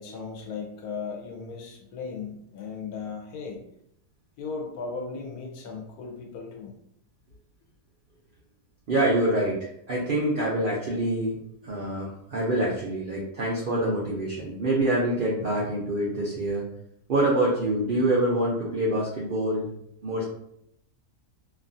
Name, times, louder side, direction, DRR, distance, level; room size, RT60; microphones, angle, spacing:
voice 1, 0.0-3.6 4.4-6.7, left 4 dB, 75° left, 0 dB, 1.1 m, -36 dB
voice 2, 8.9-11.4 11.6-16.6 17.1-19.7 20.0-20.2, right 1 dB, 65° right, -5 dB, 0.5 m, -26 dB
2.8 x 2.4 x 2.5 m, 0.73 s
omnidirectional pair, 1.6 m